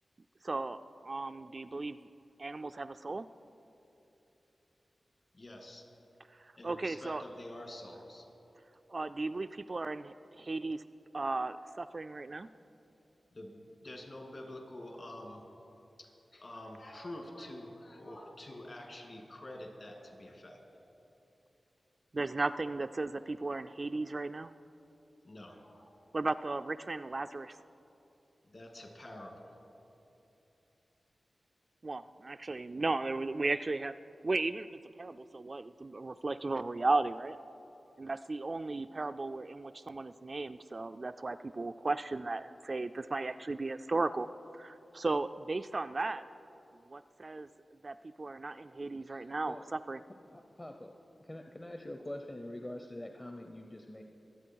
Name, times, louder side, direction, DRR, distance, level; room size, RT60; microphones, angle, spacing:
voice 1, 0.4-0.8 1.0-2.0 2.4-3.3 6.4-7.2 8.9-10.8 11.1-12.5 22.1-24.5 26.1-27.6 31.8-33.9 34.2-34.7 35.0-37.4 38.0-44.3 44.5-46.2 46.9-47.5 47.8-50.0, right 3 dB, 45° right, 10 dB, 0.3 m, -35 dB
voice 2, 5.3-5.9 6.6-8.3 13.3-15.4 16.0-20.6 25.2-25.9 28.5-29.6, left 1 dB, 55° left, 1 dB, 2.5 m, -47 dB
voice 3, 49.0-49.8 50.3-50.9 51.2-54.0, left 1 dB, 25° left, 4 dB, 0.7 m, -45 dB
23.0 x 8.5 x 4.6 m, 3.0 s
wide cardioid pair, 70°, 0 cm